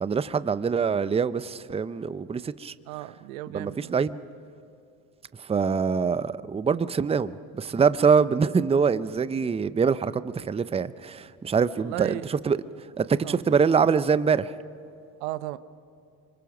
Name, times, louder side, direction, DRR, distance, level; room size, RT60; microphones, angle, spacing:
voice 1, 0.0-2.7 3.5-4.2 5.5-12.2 12.4-12.6 13.0-14.5, right 6 dB, 15° right, 15 dB, 0.6 m, -24 dB
voice 2, 2.9-4.0 11.8-12.3 13.2-13.4 15.2-15.6, right 16 dB, 90° right, 14 dB, 0.8 m, -35 dB
24.5 x 23.5 x 6.0 m, 2.6 s
supercardioid pair, 85°, 40 cm